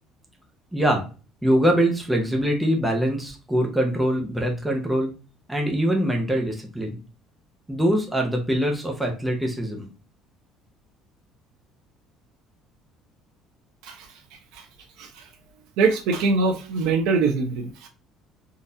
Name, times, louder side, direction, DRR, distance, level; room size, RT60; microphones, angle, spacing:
voice 1, 0.7-1.0 1.4-5.1 5.5-7.0 7.7-9.9, equal, 5° right, 1 dB, 0.6 m, -23 dB
voice 2, 15.8-17.9, right 4 dB, 75° right, 4 dB, 0.8 m, -23 dB
3.9 x 2.5 x 2.6 m, 0.34 s
cardioid pair, 175°, 0 cm